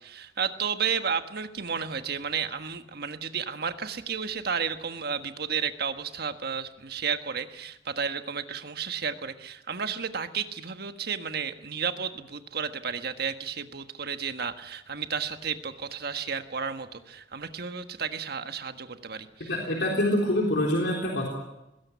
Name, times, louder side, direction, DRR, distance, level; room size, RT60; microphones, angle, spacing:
voice 1, 0.0-19.5, right 6 dB, 60° right, 8 dB, 1.5 m, -32 dB
voice 2, 19.5-21.3, left 1 dB, 65° left, 0 dB, 3.7 m, -25 dB
21.0 x 16.5 x 9.5 m, 0.93 s
head